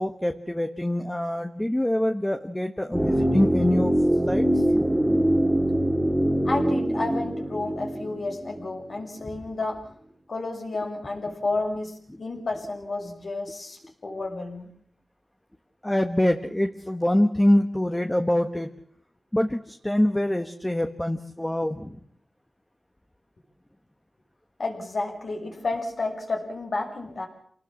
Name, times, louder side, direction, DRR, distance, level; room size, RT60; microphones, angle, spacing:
voice 1, 0.0-3.9 4.3-4.9 15.8-18.7 19.3-22.0, left 1 dB, 10° left, 5 dB, 1.3 m, -25 dB
sound 1, 2.9-8.9 9.2-9.3, right 1 dB, 10° right, 2.6 m, -23 dB
voice 2, 6.4-9.9 10.3-14.7 24.6-27.3, left 3 dB, 60° left, 1 dB, 6.4 m, -31 dB
27.5 x 19.0 x 7.4 m, 0.64 s
wide cardioid pair, 100°, 0 cm